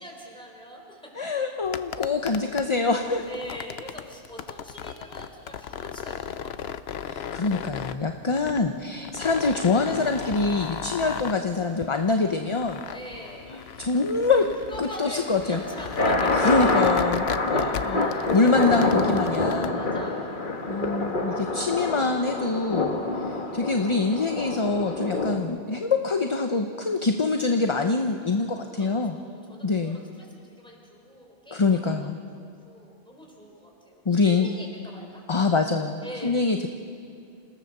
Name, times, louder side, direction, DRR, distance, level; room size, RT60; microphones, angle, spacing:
voice 1, 0.0-1.4 2.2-2.5 3.2-6.7 12.9-13.6 14.7-16.5 18.0-18.4 19.7-20.5 27.0-27.1 28.5-31.9 32.3-35.2 36.0-36.5, equal, 5° left, -1 dB, 4.2 m, -43 dB
voice 2, 1.2-3.2 7.0-12.8 13.8-14.4 14.8-15.6 16.3-19.8 20.7-29.2 29.6-30.0 31.5-32.2 34.1-34.5 35.3-36.7, left 3 dB, 30° left, 5 dB, 0.8 m, -25 dB
sound 1, 1.6-19.7, left 8 dB, 80° left, 0.9 m, -36 dB
sound 2, 15.2-25.4, left 2 dB, 50° left, 1.6 m, -26 dB
28.5 x 16.5 x 6.7 m, 2.3 s
omnidirectional pair, 1.1 m